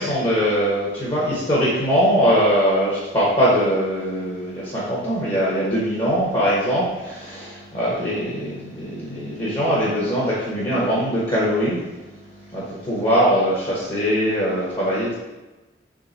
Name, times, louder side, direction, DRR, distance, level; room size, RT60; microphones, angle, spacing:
voice 1, 0.0-11.8 12.5-15.1, equal, 30° left, -7 dB, 1.1 m, -21 dB
3.8 x 3.4 x 4.0 m, 1.1 s
head